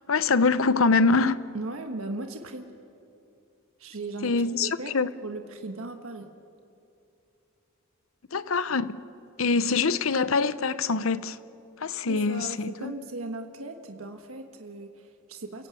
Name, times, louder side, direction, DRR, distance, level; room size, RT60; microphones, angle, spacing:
voice 1, 0.1-1.5 4.2-5.1 8.3-9.0 9.4-11.4 11.8-12.9, left 4 dB, 85° left, 0.8 m, -24 dB
voice 2, 1.5-2.7 3.8-6.3 12.1-15.7, right 2 dB, 90° right, 1.4 m, -37 dB
29.5 x 16.5 x 8.4 m
head